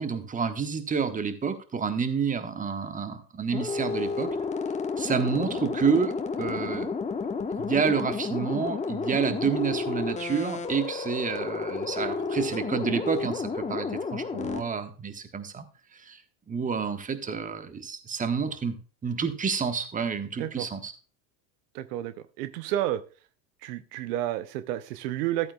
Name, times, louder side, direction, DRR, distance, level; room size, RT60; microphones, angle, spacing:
voice 1, 0.0-4.3 5.0-6.9 7.6-15.6 15.9-16.2 16.5-18.7 19.0-20.9, right 6 dB, 15° right, 9 dB, 1.1 m, -29 dB
sound 1, 3.5-14.6, left 4 dB, 15° left, 1.1 m, -31 dB
voice 2, 21.7-23.0 23.6-25.5, right 13 dB, 70° right, 13 dB, 0.7 m, -31 dB
14.5 x 8.6 x 2.3 m, 0.36 s
hypercardioid pair, 95°, 49 cm